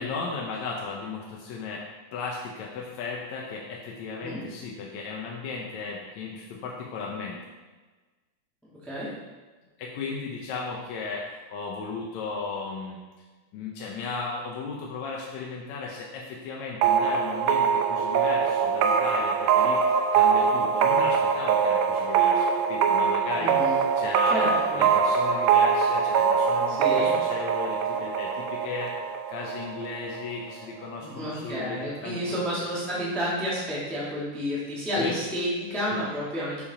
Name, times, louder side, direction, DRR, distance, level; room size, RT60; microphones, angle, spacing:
voice 1, 0.0-1.8 2.1-7.5 9.8-13.0 13.5-24.5 24.8-28.9 29.3-32.4 35.0-35.1 35.9-36.0, left 4 dB, 70° left, -2 dB, 2.0 m, -35 dB
sound 1, 16.8-30.3, right 6 dB, 85° right, 1.5 m, -23 dB
voice 2, 23.4-23.8 24.3-24.8 26.7-27.1 31.0-36.6, equal, ahead, -8 dB, 1.5 m, -30 dB
7.2 x 7.1 x 4.2 m, 1.3 s
omnidirectional pair, 3.8 m